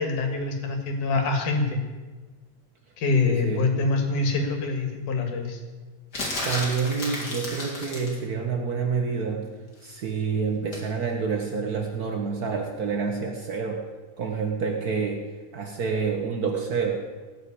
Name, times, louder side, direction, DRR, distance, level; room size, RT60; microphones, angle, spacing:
voice 1, 0.0-1.8 3.0-5.6, left 3 dB, 80° left, 5 dB, 3.4 m, -25 dB
voice 2, 3.2-3.6 6.4-9.5 9.8-13.9 14.2-15.2 15.5-17.0, right 5 dB, 85° right, 2 dB, 0.8 m, -28 dB
sound 1, 6.1-8.2 10.7-10.9, left 1 dB, 30° left, 3.4 m, -32 dB
18.0 x 6.4 x 8.7 m, 1.3 s
omnidirectional pair, 3.5 m